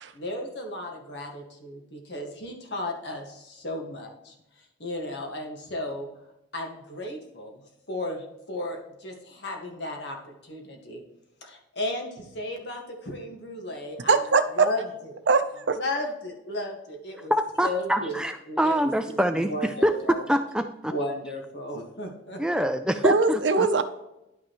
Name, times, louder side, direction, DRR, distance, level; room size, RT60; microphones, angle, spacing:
voice 1, 0.1-4.3 4.8-6.1 6.5-7.6 7.9-11.0 11.4-14.2 14.5-14.8 15.1-15.2 15.7-17.3 17.6-18.2 18.5-20.2 20.9-22.4, left 1 dB, 65° left, 2 dB, 1.7 m, -34 dB
voice 2, 14.1-14.7 15.3-15.8 23.0-23.8, right 4 dB, 75° right, 9 dB, 0.7 m, -21 dB
voice 3, 17.3-20.9 22.4-23.7, equal, 5° right, 7 dB, 0.3 m, -25 dB
11.0 x 5.9 x 3.1 m, 0.89 s
head